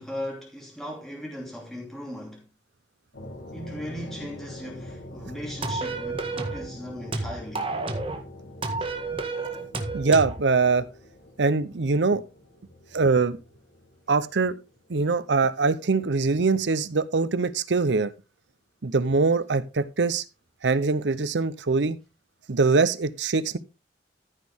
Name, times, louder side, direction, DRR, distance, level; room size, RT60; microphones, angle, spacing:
voice 1, 0.0-2.5 3.5-7.7, equal, ahead, 2.7 m, -38 dB
sound 1, 3.1-15.0, left 1 dB, 85° left, 3.3 m, -44 dB
sound 2, 5.6-6.7 7.1-8.2 8.6-10.4, right 3 dB, 30° right, 1.6 m, -30 dB
voice 2, 9.9-10.9 11.4-12.2 12.9-13.4 14.1-14.6 14.9-18.1 18.8-20.2 20.6-22.0 22.5-23.6, right 4 dB, 80° right, 0.7 m, -23 dB
14.0 x 6.3 x 3.5 m
head